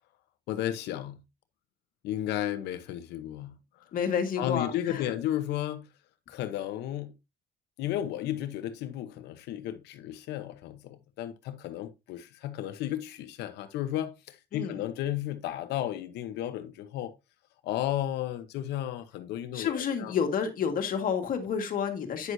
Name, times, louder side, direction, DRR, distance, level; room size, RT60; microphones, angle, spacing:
voice 1, 0.5-1.2 2.0-3.5 4.4-5.9 6.3-7.1 7.8-17.1 17.6-20.1, left 12 dB, 85° left, 1.0 m, -33 dB
voice 2, 3.9-5.1 14.5-14.8 19.5-22.3, left 7 dB, 55° left, 1.8 m, -30 dB
9.6 x 6.3 x 2.7 m
cardioid pair, 110°, 17 cm